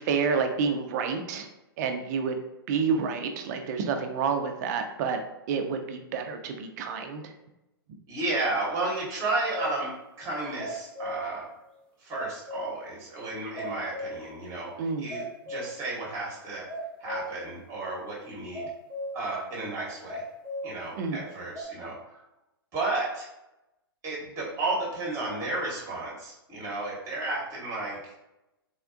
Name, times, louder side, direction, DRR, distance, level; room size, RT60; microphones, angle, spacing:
voice 1, 0.0-1.5 1.8-2.4 2.7-5.2 5.5-7.3 14.8-15.1 21.0-21.2, right 5 dB, 45° right, 6 dB, 0.4 m, -29 dB
voice 2, 8.1-9.9 10.2-11.5 12.0-16.7 17.0-18.7 19.1-20.2 20.6-22.2 22.7-23.3 24.0-28.1, right 2 dB, 25° right, -4 dB, 1.0 m, -32 dB
sound 1, 9.5-9.8 10.4-11.4 11.7-11.8 12.1-12.9 13.3-13.4 13.6-14.4 14.7-14.8 15.1-15.9 16.2-16.3 16.7-17.5 17.8-17.9 18.5-19.3 20.1-20.7 21.5-21.6, equal, 5° left, 0.5 m, -37 dB
3.5 x 2.2 x 2.5 m, 0.92 s
hypercardioid pair, 120°, 13 cm